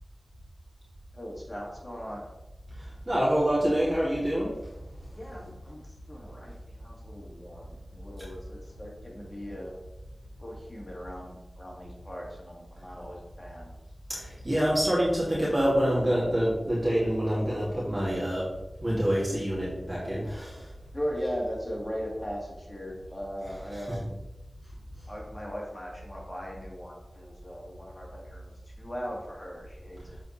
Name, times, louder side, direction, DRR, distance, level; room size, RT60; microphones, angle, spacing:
voice 1, 1.1-2.3 5.1-9.7 10.4-13.7 14.4-14.8 20.9-24.2 25.1-30.2, equal, 25° left, -2 dB, 2.0 m, -39 dB
voice 2, 2.8-4.5 14.1-18.5 18.8-20.7 23.8-24.0, equal, 35° right, -8 dB, 2.6 m, -26 dB
7.6 x 4.6 x 4.3 m, 0.98 s
wide cardioid pair, 45°, 0 cm